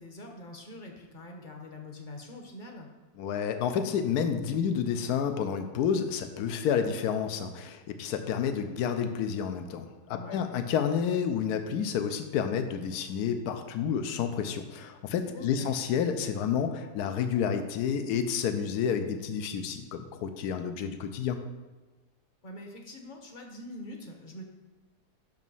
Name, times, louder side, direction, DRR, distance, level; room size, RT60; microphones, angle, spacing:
voice 1, 0.0-2.9 10.1-10.5 15.3-15.7 22.4-24.4, left 1 dB, 35° left, 3 dB, 0.9 m, -44 dB
voice 2, 3.2-21.4, left 7 dB, 75° left, 8 dB, 1.2 m, -30 dB
6.0 x 5.3 x 5.4 m, 1.2 s
omnidirectional pair, 1.8 m